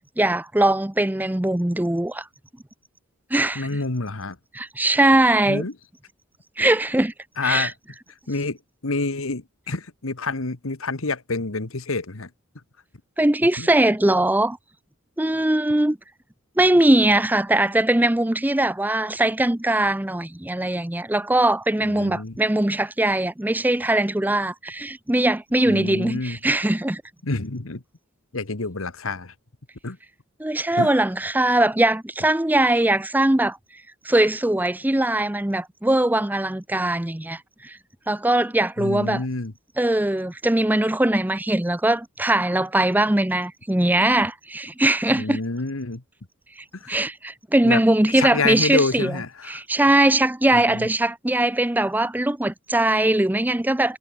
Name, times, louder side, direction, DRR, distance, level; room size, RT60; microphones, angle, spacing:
voice 1, 0.2-2.3 3.3-3.7 4.5-5.7 6.6-7.1 7.4-7.7 13.2-14.6 15.2-16.0 16.6-27.0 30.4-33.6 34.0-37.8 38.1-39.2 39.8-45.4 46.6-49.1 49.5-54.0, right 1 dB, 10° right, 0.5 m, -21 dB
voice 2, 3.5-4.4 5.5-5.7 7.4-7.7 8.3-8.6 8.8-12.3 13.6-13.7 21.8-22.4 25.7-26.4 27.2-27.8 28.3-29.3 29.8-30.0 30.8-30.9 38.8-39.5 45.1-46.0 46.7-47.0 47.6-47.8 48.2-49.6 50.5-50.9, left 3 dB, 80° left, 1.6 m, -27 dB
head